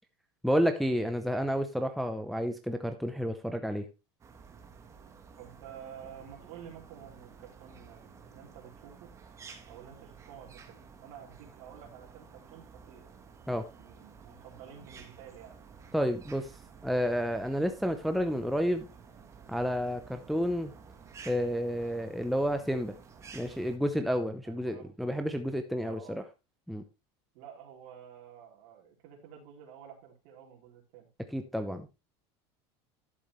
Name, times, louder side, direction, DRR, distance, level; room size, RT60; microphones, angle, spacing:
voice 1, 0.4-3.9 13.5-13.6 15.9-16.5 16.8-18.9 19.5-20.7 21.3-22.9 23.3-26.2 26.7-26.8 31.3-31.9, equal, ahead, 6 dB, 0.7 m, -30 dB
sound 1, 4.2-23.8, right 6 dB, 20° right, 1.4 m, -52 dB
voice 2, 5.4-9.1 9.7-13.1 13.7-15.6 24.4-24.9 25.8-26.2 27.3-31.1, right 9 dB, 65° right, 0 dB, 3.9 m, -50 dB
12.0 x 7.2 x 3.2 m, 0.26 s
supercardioid pair, 150°, 14 cm